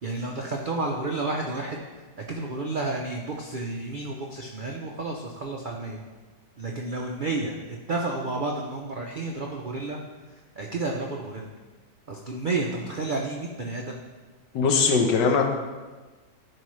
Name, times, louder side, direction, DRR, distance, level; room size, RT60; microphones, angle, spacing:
voice 1, 0.0-1.8 2.2-6.0 6.6-10.0 10.6-11.5 12.1-14.0, right 2 dB, 85° right, 0 dB, 0.4 m, -31 dB
voice 2, 14.5-15.4, left 5 dB, 85° left, 3 dB, 1.5 m, -20 dB
12.0 x 4.9 x 3.2 m, 1.3 s
omnidirectional pair, 1.8 m